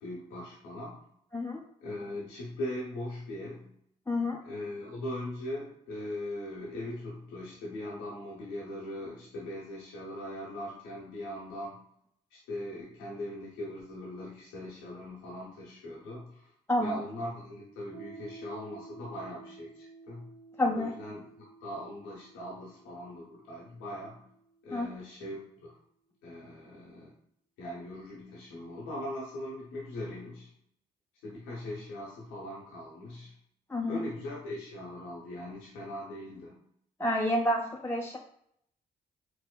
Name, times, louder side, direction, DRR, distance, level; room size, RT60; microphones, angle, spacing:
voice 1, 0.0-1.0 1.8-3.6 4.4-11.8 12.3-16.5 16.8-20.3 20.7-21.3 21.6-24.2 24.6-25.7 26.2-27.1 27.6-30.5 31.2-33.3 33.9-36.5, left 1 dB, 85° left, -5 dB, 0.8 m, -40 dB
voice 2, 1.3-1.7 4.1-4.4 16.7-17.0 20.6-20.9 24.7-24.9 33.7-34.1 37.0-38.2, left 1 dB, 15° left, 0 dB, 0.4 m, -29 dB
Piano, 17.9-25.2, right 4 dB, 75° right, 1.1 m, -52 dB
4.7 x 2.0 x 2.2 m, 0.71 s
hypercardioid pair, 45°, 19 cm